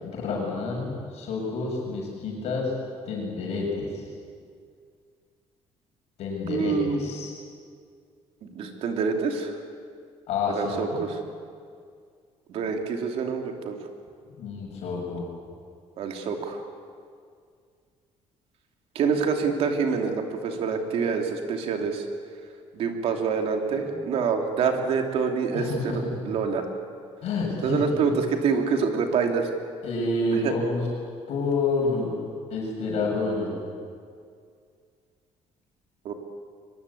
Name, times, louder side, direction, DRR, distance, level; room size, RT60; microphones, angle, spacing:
voice 1, 0.0-2.7 3.1-3.9 6.2-6.7 7.0-7.3 10.3-11.0 14.3-15.2 25.5-26.0 27.2-28.1 29.8-30.8 31.3-32.1 32.5-33.5, left 3 dB, 65° left, -2 dB, 7.0 m, -28 dB
voice 2, 6.5-7.0 8.4-9.6 10.5-11.2 12.5-13.8 16.0-16.6 18.9-22.1 22.7-26.7 27.6-29.5 30.3-30.5 36.0-36.1, right 5 dB, 60° right, 4 dB, 3.0 m, -26 dB
23.0 x 23.0 x 8.6 m, 2.2 s
cardioid pair, 170°, 12 cm